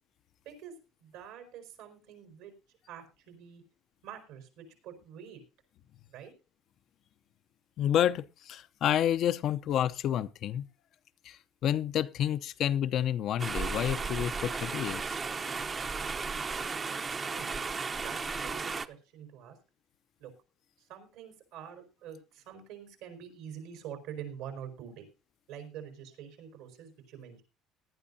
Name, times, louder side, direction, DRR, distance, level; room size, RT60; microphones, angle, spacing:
voice 1, 1.0-2.5 2.9-3.6 4.0-5.4 6.1-6.3 17.3-17.5 18.0-19.6 20.2-20.3 20.8-25.1 25.5-27.4, right 8 dB, 80° right, 4.9 m, -46 dB
voice 2, 7.8-10.7 11.3-11.4 11.6-15.2, left 10 dB, 60° left, 0.6 m, -29 dB
sound 1, 13.4-18.9, right 4 dB, 30° right, 0.8 m, -34 dB
18.5 x 11.5 x 2.7 m
supercardioid pair, 95°, 0 cm